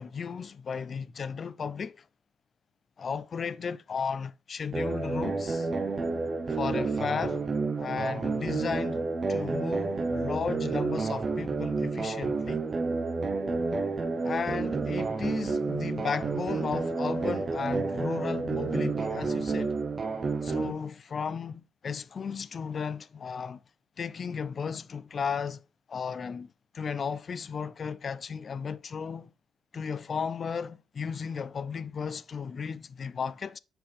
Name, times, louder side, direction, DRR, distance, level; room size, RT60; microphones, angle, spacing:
voice 1, 0.0-2.0 3.0-5.7 6.5-7.4 7.8-12.6 14.2-19.7 20.4-23.6 24.0-25.6 25.9-29.3 29.7-33.6, left 6 dB, 45° left, 0.3 m, -34 dB
sound 1, 4.7-20.7, right 4 dB, 35° right, 0.7 m, -30 dB
5.9 x 5.1 x 3.2 m
cardioid pair, 90°, 0 cm